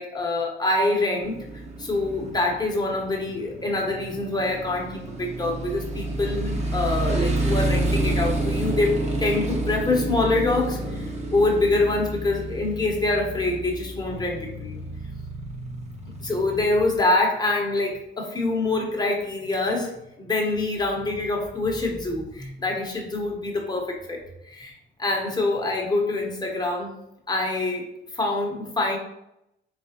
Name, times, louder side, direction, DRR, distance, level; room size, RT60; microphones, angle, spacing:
voice 1, 0.0-1.4 1.8-14.8 16.2-19.9 20.2-24.7 25.0-26.9 27.3-27.9 28.1-29.0, left 2 dB, 20° left, 0 dB, 1.0 m, -25 dB
Motorcycle, 1.2-17.0, right 1 dB, 35° right, 1.0 m, -29 dB
4.1 x 3.1 x 2.8 m, 0.82 s
cardioid pair, 90°, 20 cm